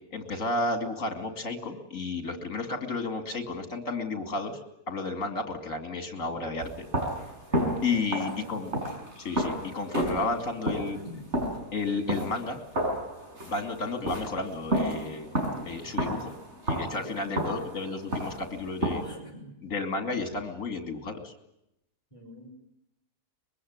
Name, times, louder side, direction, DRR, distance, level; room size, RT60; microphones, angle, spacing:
voice 1, 0.1-4.6 4.9-6.9 7.8-8.7 9.2-11.0 11.7-12.6 13.4-15.3 15.6-16.3 16.7-19.0 19.6-21.3, left 3 dB, 55° left, 6 dB, 3.2 m, -32 dB
sound 1, 6.6-19.2, equal, 45° right, 7.0 m, -31 dB
voice 2, 7.5-8.6 10.9-11.2 15.8-16.4 16.9-17.3 18.0-18.1 19.0-19.6 22.1-22.5, equal, 20° left, 2 dB, 5.1 m, -46 dB
24.0 x 22.0 x 9.6 m, 0.85 s
omnidirectional pair, 1.6 m